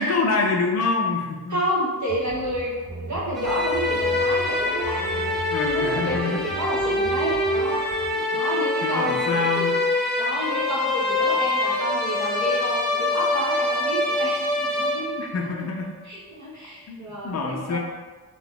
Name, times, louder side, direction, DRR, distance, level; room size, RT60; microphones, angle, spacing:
voice 1, 0.0-1.6 5.5-6.4 8.3-8.4 8.8-9.7 15.2-16.0 16.9-17.0 17.2-17.8, left 4 dB, 45° left, 0 dB, 0.4 m, -25 dB
voice 2, 1.5-5.4 5.7-9.7 10.2-15.2 15.4-15.7 16.0-17.8, right 1 dB, 50° right, -6 dB, 0.9 m, -30 dB
sound 1, 2.1-8.1, right 1 dB, 80° right, 0.9 m, -38 dB
sound 2, 3.4-15.4, left 2 dB, ahead, 0.6 m, -25 dB
2.8 x 2.4 x 3.5 m, 1.3 s
wide cardioid pair, 150°, 37 cm